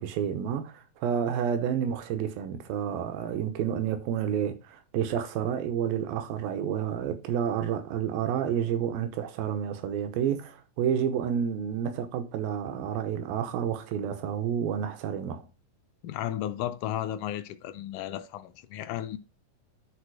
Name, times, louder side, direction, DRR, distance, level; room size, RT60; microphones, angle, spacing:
voice 1, 0.0-15.4, right 8 dB, 85° right, 2.7 m, -30 dB
voice 2, 16.0-19.2, left 12 dB, 80° left, 1.9 m, -34 dB
10.0 x 4.1 x 4.7 m
omnidirectional pair, 4.0 m